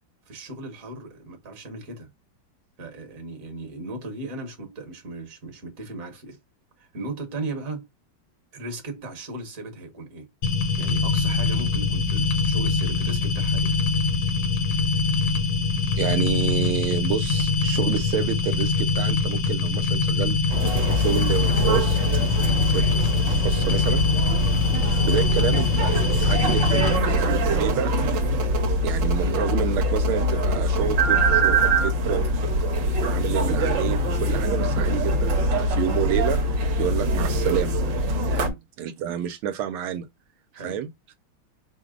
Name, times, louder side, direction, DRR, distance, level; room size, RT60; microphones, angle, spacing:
voice 1, 0.3-2.1 2.8-6.4 6.8-7.9 8.5-10.3 10.8-13.7 38.3-38.6 40.5-40.8, right 2 dB, 45° right, 1.4 m, -37 dB
sound 1, 10.4-27.0, left 4 dB, 60° left, 1.2 m, -23 dB
Piano, 10.9-21.7, left 4 dB, 85° left, 1.5 m, -37 dB
voice 2, 16.0-20.4 20.9-22.0 22.7-22.8 23.3-24.0 25.0-27.9 28.8-32.3 33.0-36.4 36.8-37.8 38.8-40.1 40.6-40.9, right 9 dB, 85° right, 1.4 m, -29 dB
sound 2, 20.5-38.5, equal, 65° right, 1.4 m, -23 dB
4.9 x 2.0 x 3.6 m
omnidirectional pair, 2.3 m